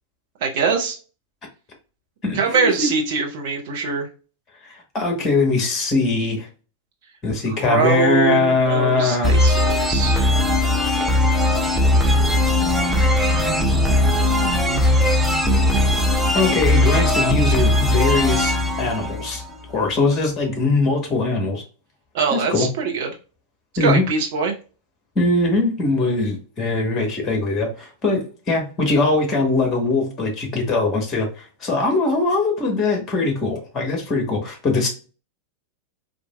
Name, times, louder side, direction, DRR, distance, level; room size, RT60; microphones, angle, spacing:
voice 1, 0.4-1.0 2.3-4.1 7.6-10.2 22.1-23.1 23.8-24.6, right 5 dB, 50° right, 0.9 m, -22 dB
voice 2, 2.2-2.9 4.6-6.5 7.2-9.4 16.3-19.4 19.7-21.6 22.3-22.7 23.8-24.0 25.1-34.9, left 3 dB, 25° left, 1.2 m, -21 dB
sound 1, 9.2-19.8, left 1 dB, 5° right, 0.7 m, -19 dB
4.5 x 2.7 x 2.3 m
figure-of-eight pair, 90°, 0 cm